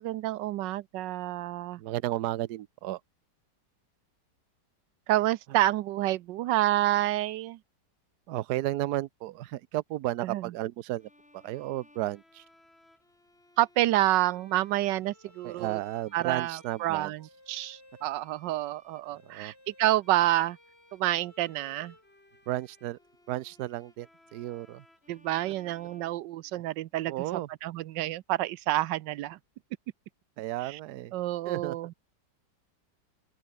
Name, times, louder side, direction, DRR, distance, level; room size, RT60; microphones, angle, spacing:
voice 1, 0.0-1.8 5.1-7.6 10.2-10.4 13.6-15.8 16.1-17.2 17.5-20.6 20.9-21.9 25.1-27.1 27.6-29.4 30.6-30.8 31.1-31.9, right 15 dB, 85° right, 1.3 m, -28 dB
voice 2, 1.8-3.0 8.3-12.4 15.4-17.1 19.2-19.5 22.5-23.0 23.3-24.8 27.1-27.5 30.4-31.1 31.4-31.8, right 15 dB, 70° right, 1.2 m, -33 dB
Bowed string instrument, 11.0-26.9, left 1 dB, 35° left, 6.2 m, -59 dB
open air
omnidirectional pair, 1.9 m